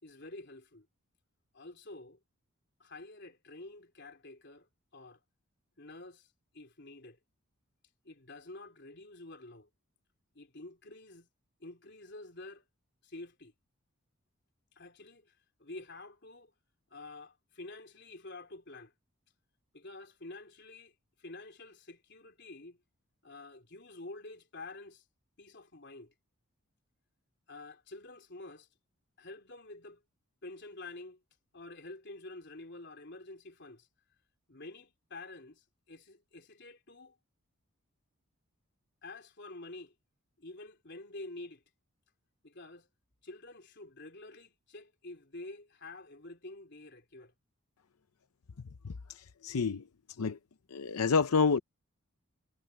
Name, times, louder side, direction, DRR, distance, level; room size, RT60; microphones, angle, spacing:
voice 1, 0.0-0.9 1.5-2.2 2.8-4.7 4.9-5.2 5.8-7.2 8.0-9.7 10.3-11.3 11.6-12.7 13.0-13.5 14.7-16.5 16.9-18.9 19.7-22.8 23.2-25.0 25.4-26.1 27.5-28.7 29.2-30.0 30.4-31.2 31.5-33.9 34.5-37.2 39.0-39.9 40.4-41.6 42.4-42.9 43.2-47.3, left 2 dB, 50° left, 3.7 m, -48 dB
voice 2, 49.4-49.8 50.2-50.4 50.7-51.6, left 5 dB, 85° left, 0.6 m, -27 dB
head